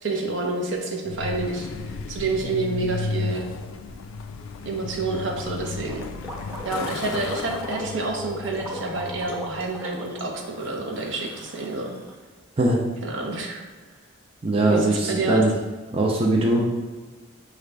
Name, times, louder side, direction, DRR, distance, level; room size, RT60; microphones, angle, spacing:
voice 1, 0.0-1.7 2.1-3.5 4.7-6.1 6.6-11.9 13.0-13.6 14.7-15.4, right 3 dB, 70° right, 1 dB, 0.8 m, -28 dB
Truck, 1.1-9.8, left 4 dB, 90° left, 0.3 m, -34 dB
Gurgling, 5.3-12.2, equal, 10° right, 0.9 m, -39 dB
voice 2, 14.4-15.5 15.9-16.6, right 2 dB, 30° right, -2 dB, 0.5 m, -20 dB
6.3 x 2.5 x 3.3 m, 1.3 s
head